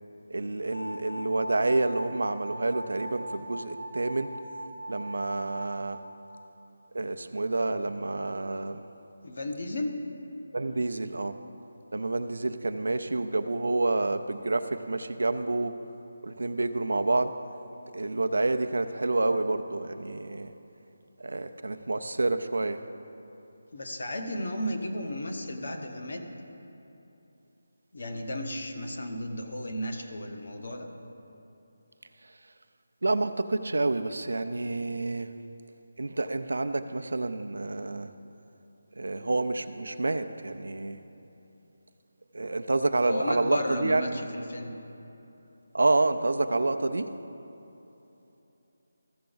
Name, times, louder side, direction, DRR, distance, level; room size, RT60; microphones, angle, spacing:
voice 1, 0.3-4.3 4.9-6.0 6.9-8.8 10.5-11.4 11.9-15.7 16.2-17.3 17.9-20.5 21.2-22.8 33.0-35.3 36.0-38.1 39.0-41.0 42.3-44.0 45.7-47.1, right 2 dB, 80° right, 9 dB, 0.5 m, -28 dB
sound 1, 0.7-5.7, equal, 80° left, 1.7 m, -40 dB
voice 2, 9.2-10.1 23.7-26.2 27.9-30.9 43.0-44.8, left 1 dB, 45° left, 4 dB, 0.9 m, -34 dB
14.5 x 5.9 x 3.9 m, 3.0 s
figure-of-eight pair, 180°, 0 cm